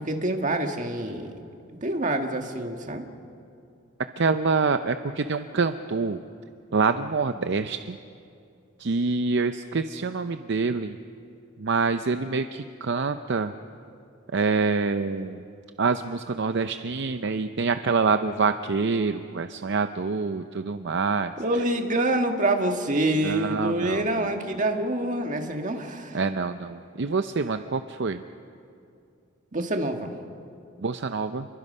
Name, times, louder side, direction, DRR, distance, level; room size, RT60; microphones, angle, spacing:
voice 1, 0.0-1.3 1.8-3.1 21.4-26.2 29.5-30.1, right 1 dB, 40° right, 4 dB, 1.7 m, -26 dB
voice 2, 4.2-6.2 6.7-8.0 8.8-11.0 11.6-13.5 14.3-15.4 15.8-21.3 23.2-24.3 26.1-28.2 30.8-31.5, right 4 dB, 60° right, 9 dB, 0.6 m, -26 dB
29.0 x 22.5 x 5.5 m, 2.5 s
head